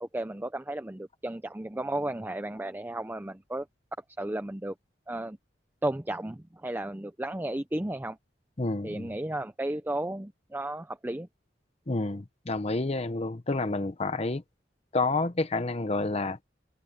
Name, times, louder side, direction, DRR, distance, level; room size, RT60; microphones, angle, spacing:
voice 1, 0.0-3.7 4.2-4.7 5.1-5.4 5.8-8.2 8.8-11.3, right 1 dB, 10° right, 0.6 m, -33 dB
voice 2, 8.6-9.1 11.9-14.4 14.9-16.4, left 3 dB, 35° left, 0.8 m, -29 dB
head